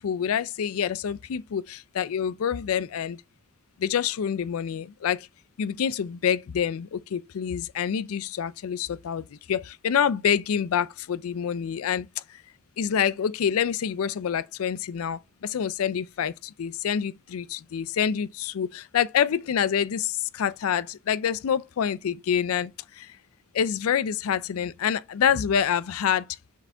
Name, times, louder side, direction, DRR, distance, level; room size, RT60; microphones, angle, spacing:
voice 1, 0.0-3.2 3.8-5.3 5.6-12.4 12.8-23.2 23.5-26.3, left 8 dB, 85° left, 0.4 m, -27 dB
7.0 x 4.8 x 3.4 m
head